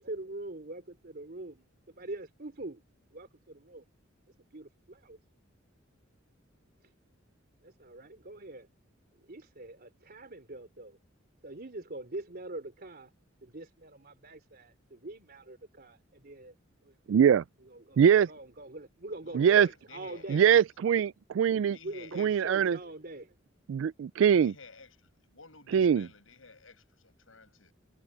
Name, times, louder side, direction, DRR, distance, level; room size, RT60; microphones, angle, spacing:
voice 1, 0.0-2.8 3.1-3.9 4.5-5.2 6.8-6.9 7.6-8.7 9.1-11.0 11.4-13.1 13.4-16.6 16.8-17.0 17.6-20.5 21.8-23.3, right 2 dB, 50° right, 3.5 m, -44 dB
voice 2, 17.1-17.4 18.0-18.3 19.4-19.7 20.3-21.1 21.4-21.8 22.2-22.8 23.7-24.5 25.7-26.1, right 8 dB, 70° right, 0.3 m, -22 dB
voice 3, 19.2-20.6 21.7-22.3 24.4-27.7, left 4 dB, 85° left, 6.5 m, -53 dB
head